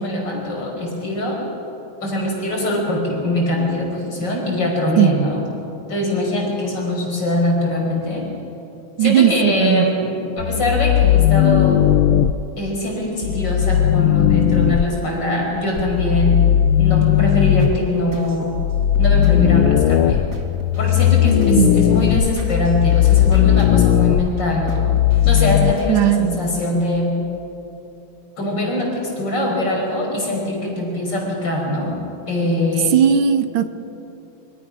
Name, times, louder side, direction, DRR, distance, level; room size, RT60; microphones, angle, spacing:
voice 1, 0.0-1.4 2.0-5.4 5.9-8.2 9.0-11.9 12.6-16.4 16.8-18.5 19.0-20.2 20.8-24.9 25.2-27.1 28.4-32.0 32.3-32.9, left 1 dB, 55° left, -1 dB, 5.7 m, -22 dB
voice 2, 9.0-9.8 21.6-21.7 25.9-26.4 32.9-33.7, right 10 dB, 75° right, 11 dB, 1.6 m, -16 dB
sound 1, 10.4-12.3 13.2-14.9 15.8-17.8 18.5-25.7, left 11 dB, 85° left, 1.5 m, -16 dB
sound 2, 17.6-26.3, right 2 dB, 50° right, 2.8 m, -38 dB
25.5 x 24.5 x 6.1 m, 2.9 s
omnidirectional pair, 2.3 m